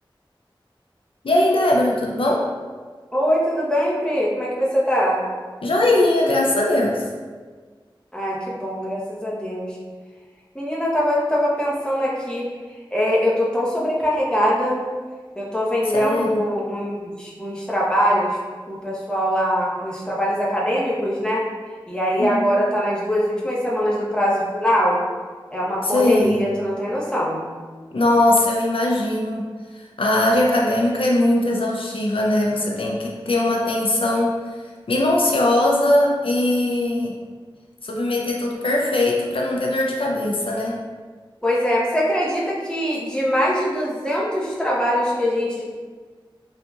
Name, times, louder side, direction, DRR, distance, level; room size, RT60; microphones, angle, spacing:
voice 1, 1.2-2.5 5.6-7.0 15.9-16.4 22.2-22.5 25.8-26.5 27.9-29.5 30.0-34.4 34.9-37.1 37.8-40.8, left 1 dB, 85° left, -1 dB, 0.4 m, -20 dB
voice 2, 3.1-5.2 8.1-9.8 10.5-12.5 12.9-14.8 15.4-18.4 18.7-21.4 21.9-25.0 25.5-27.4 41.4-45.6, equal, 10° left, -5 dB, 0.8 m, -22 dB
3.9 x 2.7 x 2.3 m, 1.5 s
wide cardioid pair, 40°, 9 cm